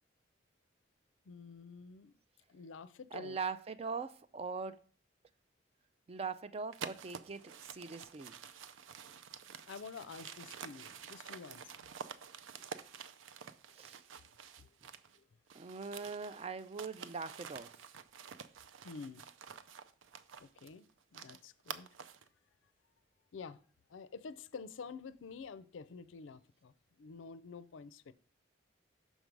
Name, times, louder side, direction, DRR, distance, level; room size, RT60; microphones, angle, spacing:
voice 1, 1.3-2.1 2.5-3.4 9.7-11.9 14.6-14.7 15.2-15.3 18.8-19.2 20.4-20.9 21.1-21.9 23.3-23.6 23.9-28.1, left 5 dB, 80° left, 0.4 m, -49 dB
voice 2, 3.1-4.8 6.1-8.3 13.7-14.0 15.5-17.7, right 5 dB, 30° right, 0.3 m, -41 dB
sound 1, 6.7-15.2 15.5-22.3, right 7 dB, 90° right, 0.5 m, -49 dB
6.3 x 4.6 x 5.2 m
head